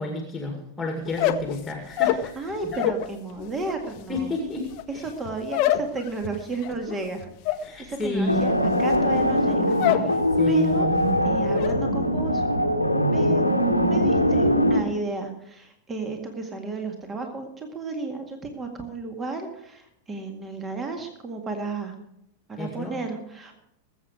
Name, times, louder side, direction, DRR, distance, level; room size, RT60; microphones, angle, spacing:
voice 1, 0.0-2.5 4.1-5.0 7.6-8.6 10.4-10.9 22.6-22.9, left 2 dB, 10° left, 3 dB, 2.1 m, -30 dB
sound 1, 1.0-3.1 3.4-10.2 10.5-11.0 11.2-11.8, left 12 dB, 45° left, 0.8 m, -27 dB
voice 2, 2.4-4.4 4.9-8.5 8.8-10.9 11.2-13.4 13.9-21.9 22.5-23.5, right 3 dB, 20° right, 4 dB, 2.0 m, -33 dB
sound 2, 8.3-14.8, equal, 90° left, 1.2 m, -22 dB
20.5 x 8.0 x 4.9 m, 0.78 s
figure-of-eight pair, 90°, 0 cm